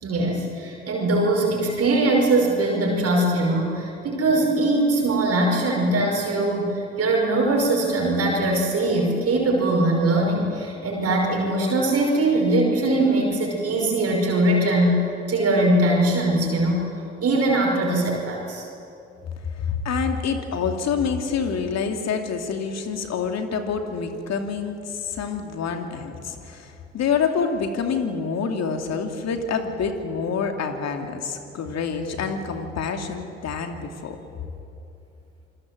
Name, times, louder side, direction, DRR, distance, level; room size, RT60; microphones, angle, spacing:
voice 1, 0.0-16.9 17.2-18.6, right 2 dB, 50° right, -1 dB, 5.7 m, -21 dB
voice 2, 19.4-34.2, left 5 dB, 55° left, 5 dB, 2.7 m, -27 dB
26.5 x 21.0 x 7.8 m, 2.8 s
hypercardioid pair, 50°, 31 cm